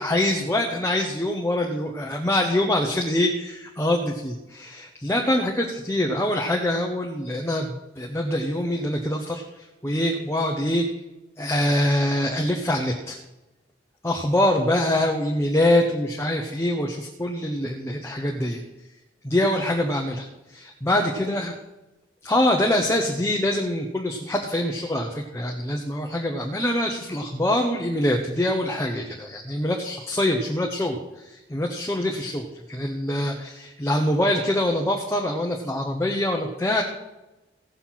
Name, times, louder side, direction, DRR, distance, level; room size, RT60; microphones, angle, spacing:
voice 1, 0.0-10.9 11.4-13.2 14.0-18.6 19.2-21.5 22.2-36.8, left 1 dB, 15° left, 1 dB, 1.0 m, -24 dB
17.0 x 6.8 x 5.9 m, 1.0 s
head